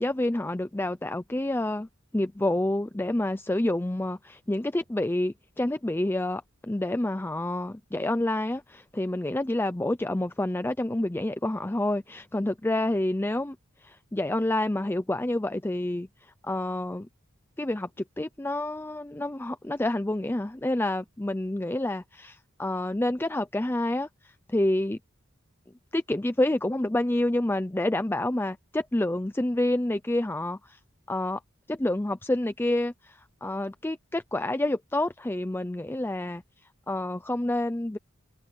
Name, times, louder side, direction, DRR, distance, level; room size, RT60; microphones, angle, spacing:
voice 1, 0.0-1.9 2.1-13.6 13.8-17.1 17.6-17.9 18.2-25.0 25.9-30.8 31.1-31.4 31.7-36.4 36.9-38.0, left 1 dB, 10° left, 0.5 m, -28 dB
head